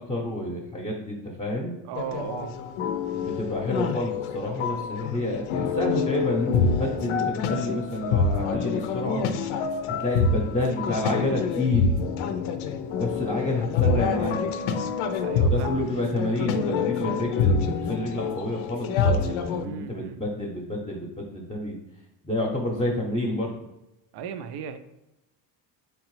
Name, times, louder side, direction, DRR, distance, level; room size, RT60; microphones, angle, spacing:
voice 1, 0.0-1.7 3.1-9.3 9.9-12.1 13.0-14.4 15.4-21.8 22.2-23.5, left 1 dB, 15° left, -2 dB, 0.8 m, -29 dB
voice 2, 1.8-2.5 15.2-15.8 19.6-20.2 24.1-24.8, right 7 dB, 55° right, 10 dB, 0.5 m, -36 dB
sound 1, 1.9-19.6, left 5 dB, 75° left, 0.6 m, -26 dB
3.7 x 3.1 x 3.1 m, 0.93 s
supercardioid pair, 75°, 48 cm